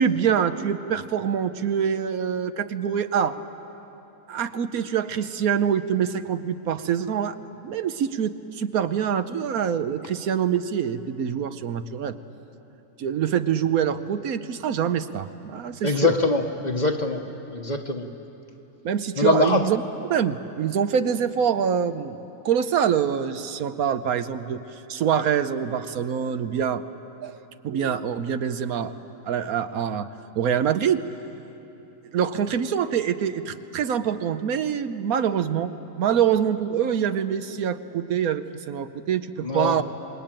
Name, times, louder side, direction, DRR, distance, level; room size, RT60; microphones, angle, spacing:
voice 1, 0.0-3.4 4.3-7.4 7.6-12.2 13.0-16.1 18.8-19.8 20.1-22.2 22.4-24.6 24.9-26.8 27.2-27.4 27.6-28.9 29.2-30.1 30.3-31.0 32.1-39.8, right 8 dB, 80° right, 10 dB, 1.3 m, -25 dB
voice 2, 15.8-17.2 17.5-18.1 19.2-19.6 39.4-39.8, left 3 dB, 30° left, 5 dB, 1.2 m, -23 dB
26.5 x 21.0 x 9.0 m, 3.0 s
omnidirectional pair, 1.5 m